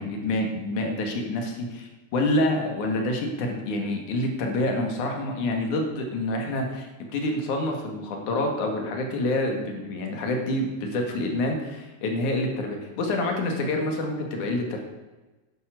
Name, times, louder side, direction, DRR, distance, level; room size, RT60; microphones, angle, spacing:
voice 1, 0.0-14.8, left 1 dB, 85° left, 2 dB, 3.3 m, -27 dB
10.5 x 9.8 x 6.5 m, 1.2 s
omnidirectional pair, 3.4 m